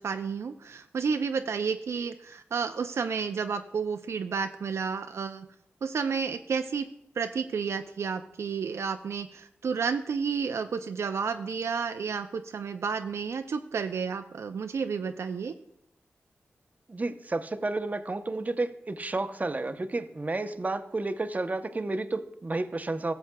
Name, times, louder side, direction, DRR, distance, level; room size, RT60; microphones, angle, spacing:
voice 1, 0.0-5.5 5.8-6.9 7.2-15.5, right 5 dB, 75° right, 7 dB, 0.4 m, -31 dB
voice 2, 16.9-23.1, right 2 dB, 35° right, 9 dB, 0.7 m, -31 dB
15.0 x 7.1 x 2.2 m, 0.73 s
cardioid pair, 45°, 5 cm